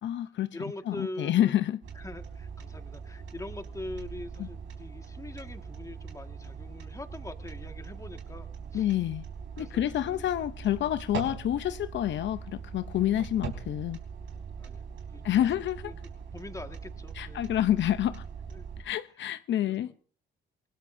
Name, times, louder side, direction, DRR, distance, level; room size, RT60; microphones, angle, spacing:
voice 1, 0.0-0.6 0.9-1.8 4.4-4.5 8.7-9.2 9.6-14.0 15.2-15.8 17.1-18.3 18.8-19.9, left 12 dB, 65° left, 0.7 m, -28 dB
voice 2, 0.5-1.5 1.9-8.9 9.6-10.2 14.6-17.5 18.5-18.6 19.6-19.9, left 2 dB, 15° left, 1.7 m, -43 dB
sound 1, 1.8-18.8, right 6 dB, 70° right, 4.3 m, -41 dB
27.5 x 18.5 x 2.7 m
cardioid pair, 90°, 20 cm